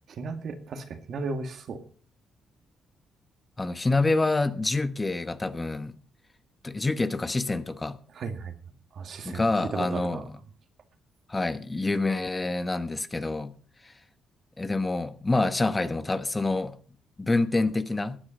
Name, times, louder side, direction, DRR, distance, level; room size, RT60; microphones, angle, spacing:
voice 1, 0.1-1.8 8.1-8.5 8.9-9.4 9.7-10.2, right 4 dB, 60° right, 2.1 m, -35 dB
voice 2, 3.6-6.0 6.6-8.0 9.2-10.2 11.3-13.5 13.8-13.9 14.6-16.8 17.2-18.2, left 2 dB, 20° left, 1.0 m, -27 dB
15.0 x 9.8 x 5.1 m
cardioid pair, 90°, 0 cm